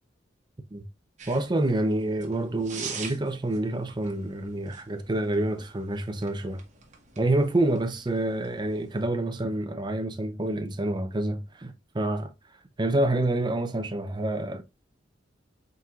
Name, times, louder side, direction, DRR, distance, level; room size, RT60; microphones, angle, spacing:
sound 1, 1.2-9.1, right 5 dB, 40° right, 1.0 m, -45 dB
voice 1, 1.3-6.6 7.2-12.3 12.8-14.6, right 1 dB, 25° right, 0.5 m, -27 dB
4.4 x 3.8 x 2.4 m
head